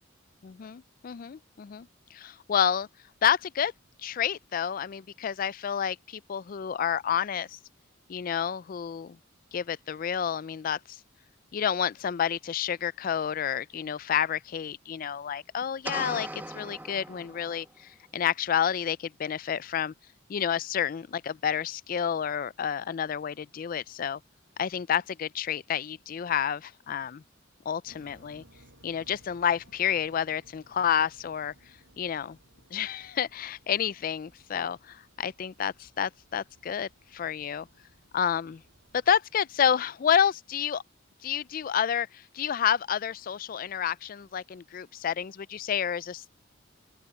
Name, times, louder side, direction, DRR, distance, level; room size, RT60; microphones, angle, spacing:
voice 1, 0.4-2.9 3.2-3.7 4.0-7.6 8.1-9.2 9.5-11.0 11.5-16.3 16.5-19.9 20.3-24.2 24.6-27.2 27.7-28.4 28.8-31.5 32.0-32.4 32.7-37.7 38.1-38.6 38.9-40.8 41.2-46.3, left 8 dB, 45° left, 0.3 m, -29 dB
sound 1, 15.8-17.8, right 1 dB, 10° right, 1.1 m, -39 dB
sound 2, 27.9-39.2, right 1 dB, 65° right, 6.5 m, -61 dB
open air
head